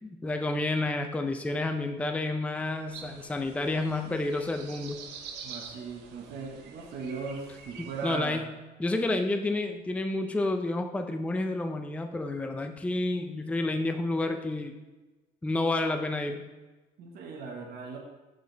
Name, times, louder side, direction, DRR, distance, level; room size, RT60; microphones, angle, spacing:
voice 1, 0.0-5.0 7.8-8.5 8.8-14.7 15.4-16.5, left 2 dB, 10° left, 6 dB, 0.4 m, -30 dB
sound 1, 2.9-8.2, right 6 dB, 90° right, 0.8 m, -46 dB
voice 2, 5.4-8.4 17.0-18.0, right 4 dB, 70° right, 0 dB, 1.2 m, -38 dB
6.2 x 5.1 x 3.9 m, 1.2 s
cardioid pair, 110°, 17 cm